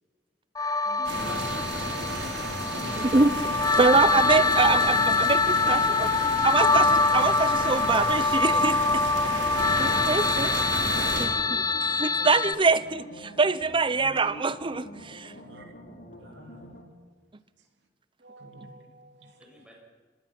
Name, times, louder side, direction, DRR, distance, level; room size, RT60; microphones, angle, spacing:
sound 1, 0.5-12.5, left 3 dB, 20° left, 0.8 m, -24 dB
voice 1, 0.8-1.6 2.8-3.7 5.2-6.3 19.4-19.7, left 1 dB, 5° right, -1 dB, 6.6 m, -49 dB
sound 2, 0.9-16.8, equal, 60° left, 2.9 m, -45 dB
sound 3, 1.0-11.3, right 2 dB, 90° right, 4.0 m, -33 dB
voice 2, 3.0-3.3 3.8-6.1 6.4-9.1 9.8-10.5 11.2-11.6 11.9-15.3, right 4 dB, 30° right, 16 dB, 0.7 m, -24 dB
voice 3, 15.2-15.7 16.2-16.6 18.2-19.4, right 2 dB, 75° right, 3 dB, 2.9 m, -51 dB
26.5 x 18.0 x 6.0 m, 1.4 s
head